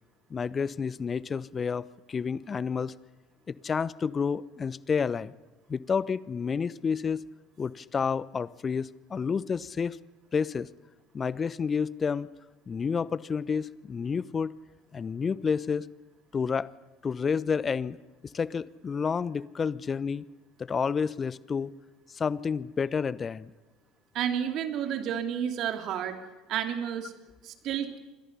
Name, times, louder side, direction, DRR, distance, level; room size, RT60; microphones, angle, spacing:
voice 1, 0.3-2.9 3.5-5.3 5.7-7.3 7.6-10.0 10.3-10.7 11.1-12.3 12.7-14.5 14.9-15.9 16.3-16.7 17.0-18.0 18.2-20.2 20.6-21.7 22.1-23.5, left 6 dB, 30° left, 19 dB, 0.9 m, -30 dB
voice 2, 24.1-26.2 26.5-27.1 27.4-28.0, right 9 dB, 50° right, 7 dB, 3.0 m, -31 dB
28.5 x 26.0 x 5.6 m, 1.1 s
figure-of-eight pair, 65°, 0 cm